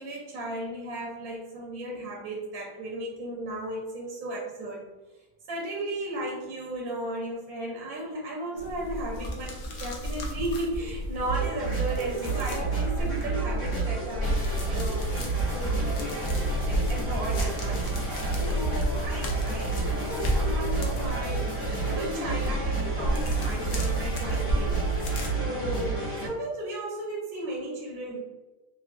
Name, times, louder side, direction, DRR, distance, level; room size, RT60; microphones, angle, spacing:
voice 1, 0.0-4.9 5.5-15.8 16.6-18.2 18.5-21.5 21.9-24.9 25.4-28.2, right 1 dB, 65° right, -3 dB, 1.1 m, -35 dB
sound 1, 8.6-25.3, equal, 75° left, 0.6 m, -33 dB
sound 2, 11.2-26.3, right 3 dB, 50° left, 1.3 m, -29 dB
3.6 x 2.5 x 2.5 m, 1.1 s
omnidirectional pair, 1.9 m